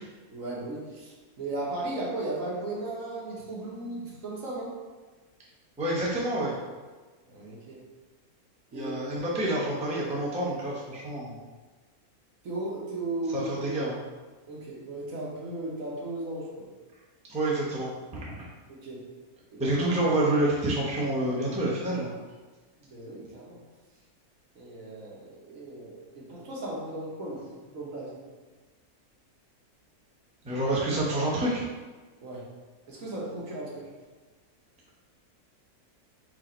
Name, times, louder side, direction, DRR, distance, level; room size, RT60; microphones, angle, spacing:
voice 1, 0.3-4.7 7.3-7.8 8.7-8.9 12.4-13.4 14.5-16.7 18.7-19.0 19.5-19.8 22.8-23.6 24.6-27.4 27.7-28.1 32.2-32.4 32.9-33.9, right 2 dB, 65° right, -4 dB, 1.4 m, -36 dB
voice 2, 5.8-6.5 8.7-11.4 13.3-14.0 17.3-18.4 19.6-22.1 30.4-31.6, right 1 dB, 5° right, -5 dB, 0.5 m, -28 dB
4.7 x 2.5 x 4.2 m, 1.3 s
omnidirectional pair, 1.6 m